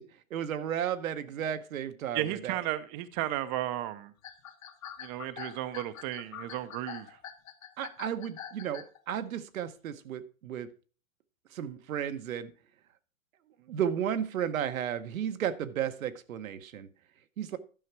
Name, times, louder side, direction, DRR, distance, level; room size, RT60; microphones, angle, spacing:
voice 1, 0.3-2.6 7.8-10.7 11.5-12.5 13.7-16.9 17.4-17.6, right 9 dB, 75° right, 10 dB, 1.1 m, -33 dB
voice 2, 2.1-4.1 5.0-7.2, right 14 dB, 35° right, 11 dB, 0.7 m, -34 dB
sound 1, 4.2-9.0, left 9 dB, 70° left, 1.8 m, -44 dB
11.5 x 5.7 x 4.6 m, 0.38 s
hypercardioid pair, 125°, 41 cm